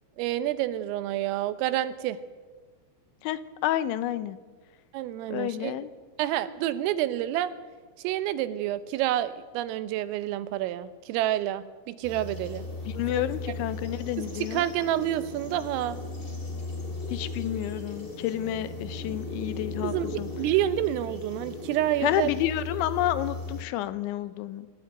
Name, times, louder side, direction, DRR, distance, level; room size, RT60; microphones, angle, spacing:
voice 1, 0.2-2.2 4.9-5.7 6.2-7.5 8.0-12.7 13.1-13.2 14.4-16.0 19.8-22.3, right 13 dB, 85° right, 13 dB, 3.6 m, -28 dB
voice 2, 3.2-4.4 5.3-5.9 12.9-14.7 17.1-20.3 22.0-24.7, left 13 dB, 80° left, 14 dB, 3.0 m, -30 dB
sound 1, 12.0-23.6, left 2 dB, 20° left, 1.6 m, -37 dB
25.0 x 14.5 x 9.0 m, 1.4 s
omnidirectional pair, 5.8 m